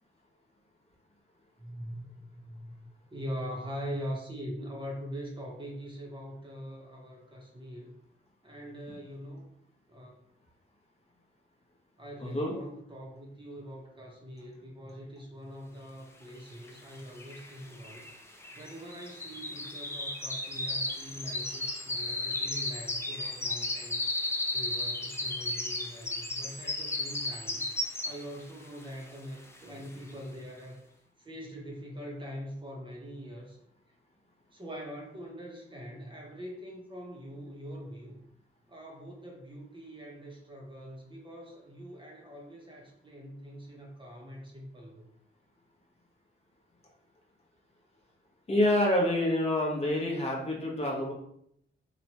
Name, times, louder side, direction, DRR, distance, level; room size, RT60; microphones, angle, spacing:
voice 1, 1.6-7.9 8.4-9.5 9.9-10.2 12.0-18.1 18.5-27.7 28.0-30.8 31.2-33.6 34.5-38.2 38.7-45.0, equal, 25° right, -2 dB, 0.7 m, -43 dB
voice 2, 12.2-12.5 21.5-21.7 48.5-51.1, left 1 dB, 30° left, -2 dB, 0.7 m, -27 dB
sound 1, 16.7-16.8 17.0-28.4 28.8-29.1 29.6-29.7, left 2 dB, 10° left, 0.4 m, -34 dB
2.9 x 2.1 x 2.8 m, 0.72 s
cardioid pair, 95°, 21 cm